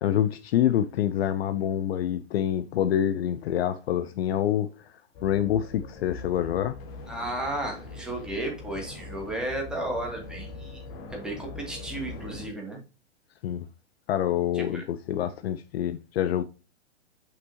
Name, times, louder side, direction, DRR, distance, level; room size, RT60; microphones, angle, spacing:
voice 1, 0.0-4.9 5.2-6.8 13.4-13.7 14.1-16.4, left 10 dB, 55° left, 0.6 m, -26 dB
sound 1, 5.1-12.5, left 2 dB, 35° left, 1.7 m, -42 dB
voice 2, 7.1-10.8 11.1-12.8 14.5-14.8, right 1 dB, ahead, 2.4 m, -33 dB
6.0 x 5.9 x 2.8 m
hypercardioid pair, 125°, 37 cm